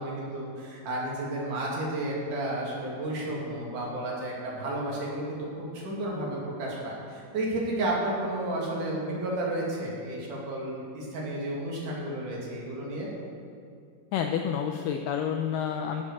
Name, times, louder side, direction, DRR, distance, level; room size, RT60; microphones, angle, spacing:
voice 1, 0.0-13.1, right 1 dB, 55° right, -4 dB, 3.6 m, -32 dB
voice 2, 14.1-16.0, left 8 dB, 90° left, 4 dB, 1.9 m, -29 dB
16.0 x 6.5 x 6.2 m, 2.3 s
omnidirectional pair, 4.5 m